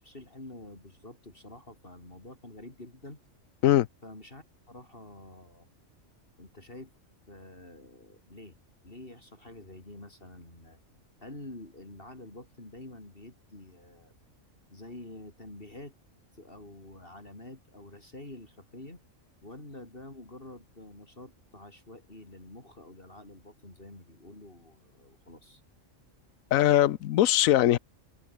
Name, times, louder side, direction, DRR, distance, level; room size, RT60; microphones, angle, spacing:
voice 1, 0.0-3.2 4.0-5.7 6.4-6.9 7.3-8.6 8.8-10.8 11.2-14.1 14.7-15.9 16.3-19.0 19.4-25.6, left 2 dB, 45° left, 4.7 m, -47 dB
voice 2, 26.5-27.8, left 13 dB, 80° left, 1.1 m, -21 dB
omnidirectional pair, 1.4 m